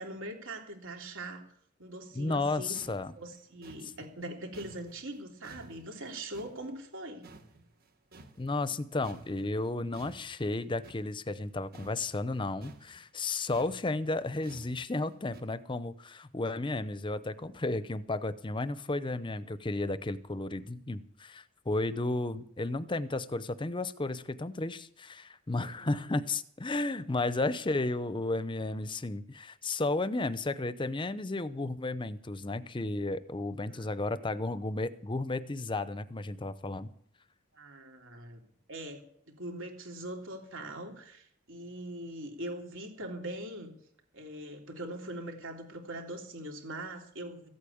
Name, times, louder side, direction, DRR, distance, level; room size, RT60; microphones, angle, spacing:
voice 1, 0.0-1.4 1.8-2.8 3.1-7.2 25.7-26.0 26.9-27.0 33.7-33.9 37.5-38.4 38.7-43.7 44.1-47.5, right 1 dB, 70° right, 3 dB, 3.2 m, -42 dB
voice 2, 2.1-3.1 8.4-36.9, left 2 dB, 25° left, 14 dB, 0.7 m, -33 dB
sound 1, 2.5-2.6 2.7-7.0 7.2-8.8 9.0-15.4, right 2 dB, 50° right, 1.6 m, -54 dB
15.0 x 8.5 x 8.6 m, 0.66 s
head